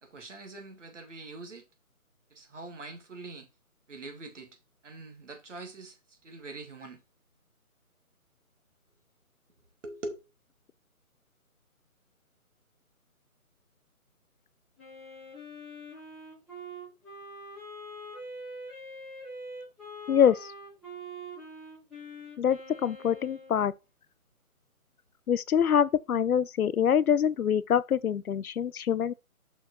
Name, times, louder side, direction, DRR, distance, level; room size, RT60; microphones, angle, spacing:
voice 1, 0.0-1.6 2.3-3.5 3.9-4.6 4.8-7.0 9.8-10.1, right 2 dB, 55° right, 2.3 m, -43 dB
Wind instrument woodwind instrument, 14.8-23.6, equal, ahead, 1.5 m, -44 dB
voice 2, 20.1-20.4 22.4-23.7 25.3-29.1, left 8 dB, 85° left, 0.6 m, -25 dB
5.8 x 4.9 x 4.7 m
figure-of-eight pair, 165°, 43 cm